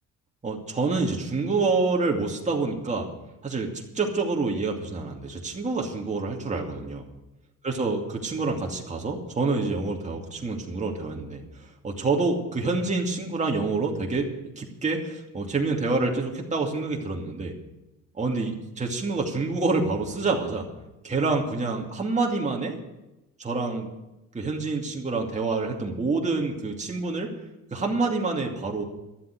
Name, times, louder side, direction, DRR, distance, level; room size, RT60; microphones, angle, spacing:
voice 1, 0.4-3.1 3.4-7.0 7.6-17.5 18.2-20.7 21.0-22.8 23.4-23.9 24.3-27.3 27.7-28.8, right 3 dB, 25° right, 0 dB, 2.5 m, -27 dB
12.5 x 7.6 x 9.3 m, 0.97 s
cardioid pair, 95°, 31 cm